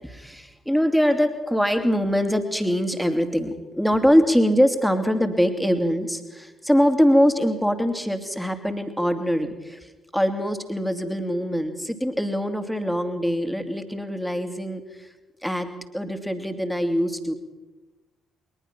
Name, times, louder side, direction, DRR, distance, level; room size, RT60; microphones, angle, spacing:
voice 1, 0.0-15.1 15.4-17.3, equal, ahead, 7 dB, 2.7 m, -23 dB
22.0 x 20.5 x 6.0 m, 1.1 s
figure-of-eight pair, 40°, 0 cm